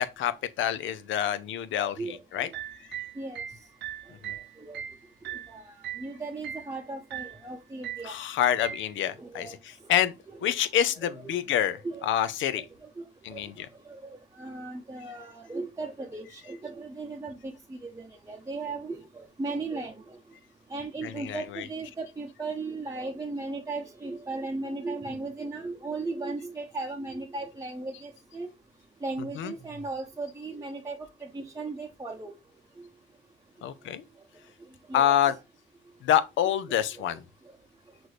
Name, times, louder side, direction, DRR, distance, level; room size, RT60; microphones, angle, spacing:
voice 1, 0.0-2.5 4.2-4.3 8.0-10.1 10.4-12.6 13.2-13.7 21.0-21.7 29.2-29.5 33.6-34.0 34.9-35.3 36.0-37.2, left 10 dB, 75° left, 0.6 m, -27 dB
voice 2, 1.9-2.6 3.2-3.4 4.6-4.8 5.5-5.6 6.0-8.1 9.2-9.6 10.3-10.5 11.0-11.4 11.8-12.1 13.0-13.1 13.3-13.4 13.9-20.2 20.7-28.5 29.0-31.0 31.3-32.3 34.9-35.2, right 3 dB, 15° right, 0.7 m, -36 dB
sound 1, 2.3-6.1 6.4-6.7 7.1-7.5 7.8-8.2 8.6-8.9, right 10 dB, 60° right, 0.5 m, -39 dB
6.1 x 2.6 x 3.1 m
cardioid pair, 90°, 20 cm